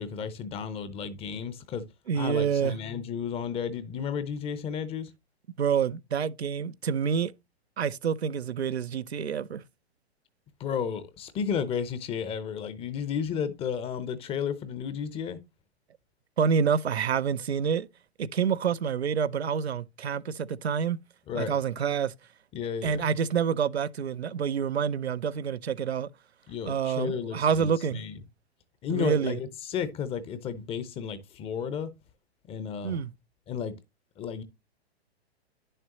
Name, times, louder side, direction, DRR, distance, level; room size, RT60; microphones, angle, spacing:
voice 1, 0.0-1.8 2.1-5.1 10.6-15.4 21.3-21.5 22.5-23.0 26.5-28.2 28.8-31.9 32.5-32.9 33.5-33.8 34.2-34.4, left 7 dB, 20° left, 0.7 m, -33 dB
voice 2, 2.1-2.8 5.6-7.3 7.8-9.6 16.4-17.9 18.2-21.0 21.3-22.1 22.8-26.1 26.6-28.0 28.9-29.4 32.8-33.1, right 7 dB, 75° right, 0.6 m, -27 dB
10.0 x 6.6 x 2.9 m
figure-of-eight pair, 110°, 32 cm